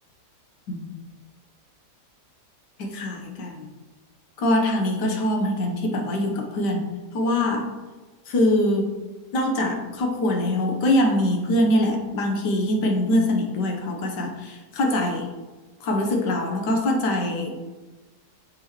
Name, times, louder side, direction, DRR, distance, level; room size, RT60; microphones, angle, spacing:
voice 1, 0.7-1.1 2.8-3.7 4.4-7.7 8.3-8.9 9.3-15.3 15.8-17.5, left 1 dB, 80° left, 2 dB, 1.5 m, -23 dB
6.7 x 5.0 x 3.0 m, 1.2 s
omnidirectional pair, 1.8 m